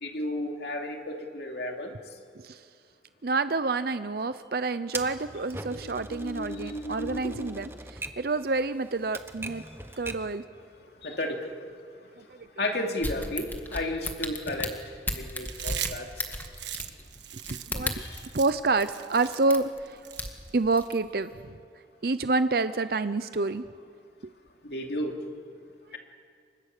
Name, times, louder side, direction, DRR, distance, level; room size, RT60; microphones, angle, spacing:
voice 1, 0.0-1.9 5.8-7.5 11.0-11.5 12.6-14.8 15.1-16.1 18.0-18.2 24.6-25.2, left 1 dB, 65° left, 2 dB, 2.7 m, -33 dB
voice 2, 3.2-9.6 10.0-10.4 12.4-12.5 17.5-17.9 18.3-20.0 20.5-21.3 22.0-23.6 24.2-24.3, right 3 dB, 55° right, 12 dB, 0.6 m, -28 dB
Typewriter, 4.9-10.4, right 2 dB, 15° right, 1.1 m, -41 dB
sound 1, 13.0-18.3 18.8-18.9 19.5-19.8 20.1-20.9 21.4-21.5, left 2 dB, 10° left, 2.0 m, -34 dB
Chewing mastication, 15.4-20.9, right 11 dB, 85° right, 1.4 m, -39 dB
29.5 x 25.0 x 6.7 m, 2.2 s
head